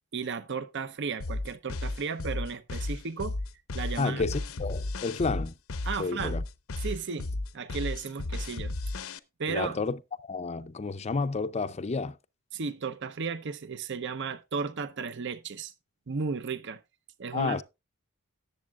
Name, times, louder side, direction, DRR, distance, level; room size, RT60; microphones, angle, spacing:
voice 1, 0.1-3.4 3.7-4.2 5.8-6.4 6.8-8.7 9.4-9.8 12.5-15.7 16.1-16.8 17.2-17.6, right 5 dB, 55° right, 0.7 m, -34 dB
sound 1, 1.2-9.2, left 2 dB, 75° left, 0.7 m, -34 dB
voice 2, 4.0-5.5 6.0-6.4 9.5-12.2 17.3-17.6, left 4 dB, 30° left, 0.5 m, -31 dB
18.0 x 7.4 x 2.3 m
head